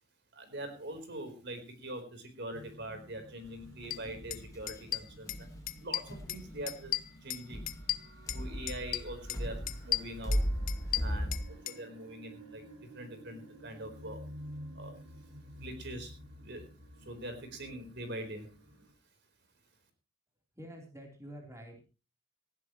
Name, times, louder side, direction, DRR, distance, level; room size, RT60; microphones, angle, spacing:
voice 1, 0.3-7.6 8.3-10.4 11.0-14.2 14.7-15.0 15.6-16.1 16.4-16.7 17.0-18.5, right 1 dB, 50° right, 7 dB, 4.2 m, -43 dB
sound 1, 2.5-18.9, equal, 90° right, 6.1 m, -52 dB
sound 2, 3.4-11.4, equal, 15° left, 1.7 m, -38 dB
sound 3, 3.9-4.0 4.3-4.4 4.7-5.4 5.7-6.4 6.7-8.4 8.7-9.4 9.7-11.8, left 13 dB, 40° left, 0.7 m, -35 dB
voice 2, 20.5-21.8, equal, 15° right, 1 dB, 3.8 m, -48 dB
18.5 x 15.5 x 3.1 m, 0.33 s
head